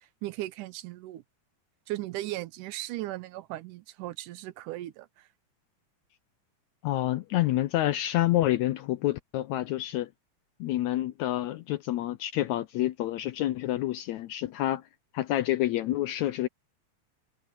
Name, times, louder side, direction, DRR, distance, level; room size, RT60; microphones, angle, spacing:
voice 1, 0.2-1.2 1.9-5.3, right 16 dB, 80° right, 2.2 m, -37 dB
voice 2, 6.8-10.1 10.6-14.9 15.1-16.5, left 14 dB, 80° left, 1.7 m, -28 dB
omnidirectional pair, 3.8 m